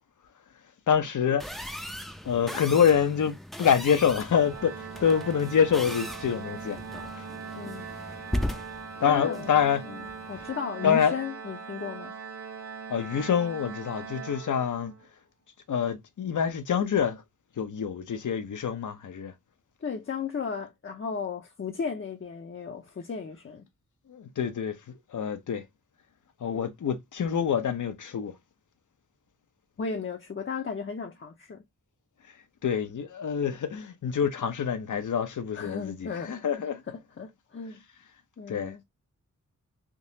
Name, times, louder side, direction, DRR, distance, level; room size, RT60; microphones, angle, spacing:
voice 1, 0.9-1.5 2.2-6.8 7.1-7.2 9.0-9.8 10.8-11.2 12.9-14.9 15.7-17.2 17.6-19.3 24.1-24.8 25.1-25.6 26.4-28.3 32.6-36.8 38.5-38.7, left 7 dB, 70° left, 0.8 m, -26 dB
sound 1, 1.4-10.5, equal, ahead, 0.5 m, -38 dB
Organ, 4.3-15.1, right 6 dB, 50° right, 1.3 m, -41 dB
voice 2, 7.5-7.9 9.0-9.5 9.9-12.1 19.8-23.6 29.8-31.6 35.5-37.8 38.4-38.8, left 5 dB, 40° left, 0.7 m, -35 dB
3.7 x 2.9 x 2.7 m
wide cardioid pair, 90°, 31 cm